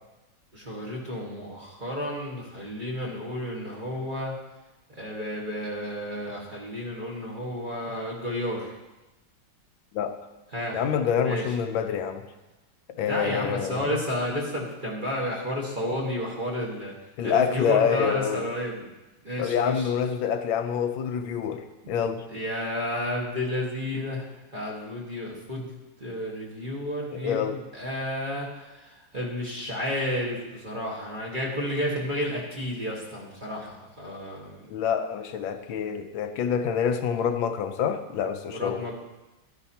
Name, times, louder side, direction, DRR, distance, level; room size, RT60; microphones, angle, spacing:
voice 1, 0.5-4.3 4.9-8.7 10.5-10.8 11.2-11.4 13.0-16.9 17.2-18.9 19.2-19.9 22.3-27.4 27.7-34.7 38.5-38.9, left 1 dB, 25° right, -3 dB, 1.5 m, -31 dB
voice 2, 10.7-12.2 13.0-13.9 17.2-18.5 19.4-22.3 27.1-27.6 34.7-38.8, left 7 dB, 80° left, 7 dB, 1.4 m, -27 dB
12.5 x 9.9 x 2.8 m, 1.0 s
omnidirectional pair, 2.2 m